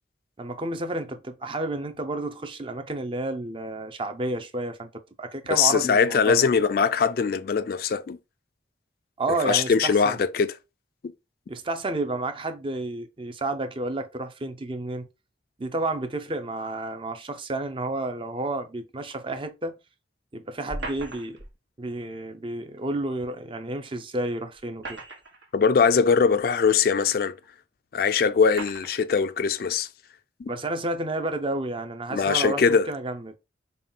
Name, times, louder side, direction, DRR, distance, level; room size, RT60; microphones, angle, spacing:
voice 1, 0.4-4.9 5.2-6.5 9.2-10.2 11.5-15.1 15.6-19.7 20.3-21.4 21.8-25.0 30.5-33.3, right 2 dB, 25° right, 0.5 m, -31 dB
voice 2, 5.5-8.2 9.4-10.5 25.5-27.3 27.9-29.9 30.4-30.5 32.1-32.9, left 6 dB, 50° left, 0.3 m, -21 dB
sound 1, 20.7-21.5 23.2-23.3 24.6-25.5 26.4-26.5 27.4-27.5 28.5-29.0, right 2 dB, 75° right, 1.2 m, -37 dB
5.4 x 2.3 x 3.7 m
head